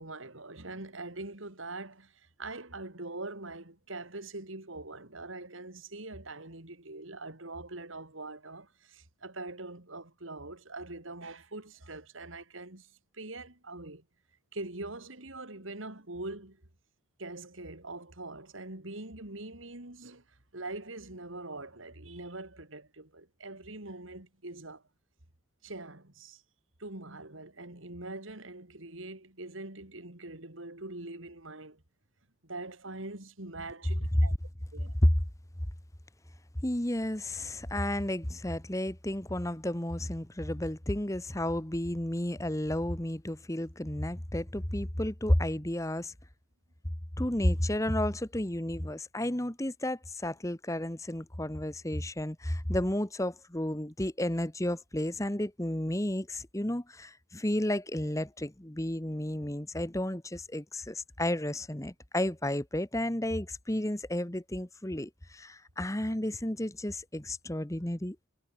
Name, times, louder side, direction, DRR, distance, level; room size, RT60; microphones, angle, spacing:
voice 1, 0.0-14.0 14.5-16.6 17.2-24.8 25.6-26.4 26.8-31.8 32.4-34.3 34.7-35.0, right 2 dB, 80° right, 3.6 m, -43 dB
voice 2, 36.6-46.1 47.2-68.3, left 1 dB, 15° left, 1.2 m, -32 dB
head